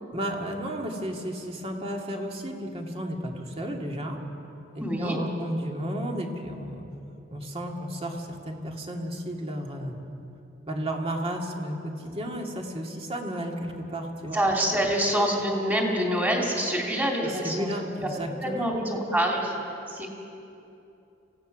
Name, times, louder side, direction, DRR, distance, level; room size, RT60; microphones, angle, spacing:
voice 1, 0.1-4.2 5.0-6.9 7.3-10.0 10.7-14.4 17.2-18.7, equal, 30° right, 1 dB, 2.1 m, -33 dB
voice 2, 4.8-5.2 14.3-17.7 18.4-19.5 19.9-20.1, equal, 10° right, -1 dB, 3.0 m, -26 dB
28.0 x 16.5 x 6.3 m, 2.8 s
head